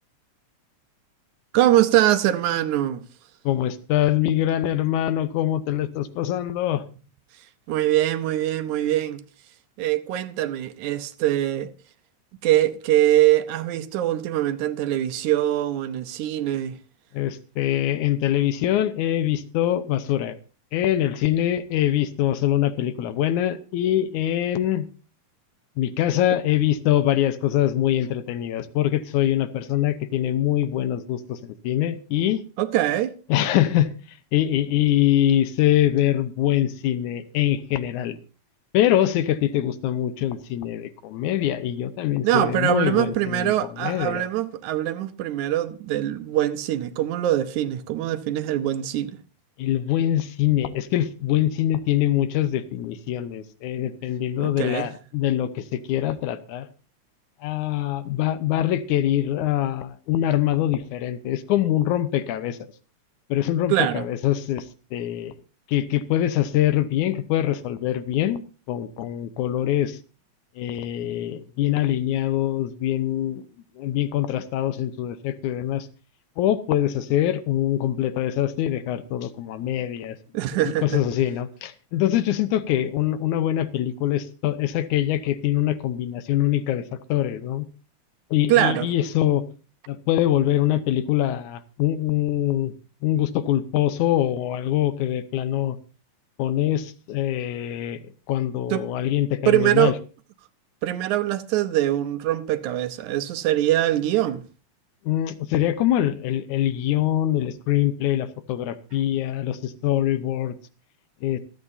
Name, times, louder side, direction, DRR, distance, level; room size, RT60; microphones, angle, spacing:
voice 1, 1.5-3.0 7.7-9.2 9.8-11.7 12.4-16.8 32.6-33.2 42.2-49.2 54.4-54.9 63.7-64.1 80.3-81.0 88.5-88.9 98.7-98.8 99.5-100.0 100.8-104.4, right 13 dB, 75° right, 2.2 m, -23 dB
voice 2, 3.5-6.8 17.1-20.4 20.7-24.9 25.8-32.4 33.3-38.2 38.7-43.5 43.8-44.2 49.6-56.7 57.4-62.6 63.3-64.7 64.9-65.4 65.7-68.4 68.7-70.0 70.6-73.4 73.8-75.9 76.4-80.2 80.6-87.7 88.3-89.4 89.9-92.7 93.0-95.8 96.4-98.0 98.3-99.9 105.1-110.6 111.2-111.4, left 12 dB, 80° left, 2.3 m, -24 dB
25.5 x 8.6 x 2.7 m
omnidirectional pair, 3.5 m